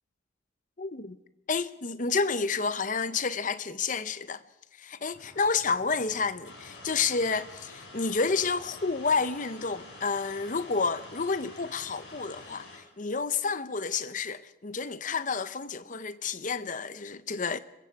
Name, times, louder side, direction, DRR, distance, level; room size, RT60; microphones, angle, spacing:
voice 1, 0.8-1.2 1.5-4.4 4.8-17.6, left 4 dB, 40° left, 0.7 m, -30 dB
sound 1, 5.1-12.5, left 1 dB, 85° left, 7.0 m, -55 dB
sound 2, 6.4-12.8, left 2 dB, 60° left, 5.5 m, -48 dB
26.0 x 22.5 x 4.7 m
head